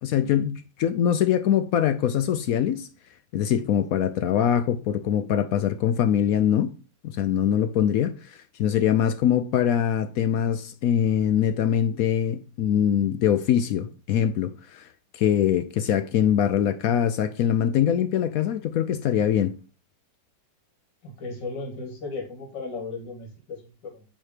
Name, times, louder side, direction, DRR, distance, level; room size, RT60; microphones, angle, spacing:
voice 1, 0.0-2.9 3.3-6.7 7.0-14.9 15.1-19.6, left 9 dB, 75° left, 0.8 m, -23 dB
voice 2, 21.0-24.1, left 3 dB, 90° left, 2.3 m, -36 dB
8.9 x 3.1 x 4.9 m
omnidirectional pair, 1.9 m